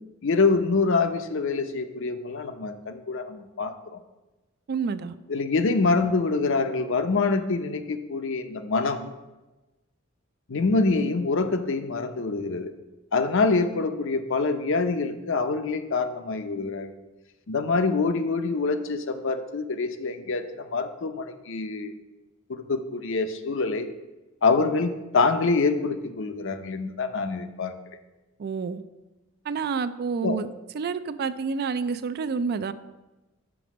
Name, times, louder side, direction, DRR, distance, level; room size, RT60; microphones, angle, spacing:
voice 1, 0.2-4.0 5.3-9.1 10.5-12.7 13.1-16.9 17.5-21.9 22.5-23.9 24.4-27.7 30.2-30.4, left 3 dB, 65° left, 9 dB, 0.6 m, -25 dB
voice 2, 4.7-5.2 28.4-28.8 29.5-30.5 30.7-32.7, right 5 dB, 50° right, 13 dB, 0.3 m, -28 dB
6.0 x 5.0 x 6.0 m, 1.1 s
head